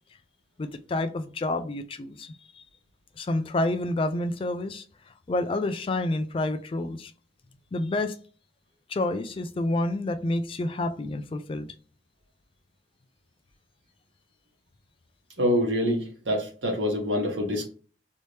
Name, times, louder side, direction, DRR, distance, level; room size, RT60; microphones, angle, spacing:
voice 1, 0.6-2.6 3.2-4.8 5.3-7.1 7.7-8.2 8.9-11.7, left 2 dB, 30° left, 0.3 m, -29 dB
voice 2, 15.4-17.6, equal, 90° right, 1.3 m, -26 dB
3.2 x 2.7 x 3.2 m
head